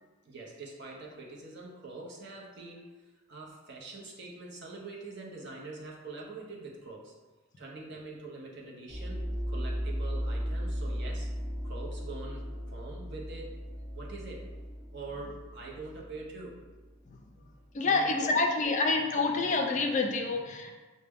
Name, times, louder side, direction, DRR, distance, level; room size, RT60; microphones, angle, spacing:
voice 1, 0.2-7.1 7.6-11.3 11.6-13.6 13.9-14.5 14.9-16.6 17.8-18.7, right 3 dB, 55° right, -2 dB, 0.8 m, -44 dB
sound 1, 8.9-17.6, equal, 5° right, 1.3 m, -36 dB
voice 2, 17.7-20.8, left 3 dB, 35° left, 3 dB, 0.4 m, -27 dB
5.6 x 2.1 x 3.5 m, 1.2 s
head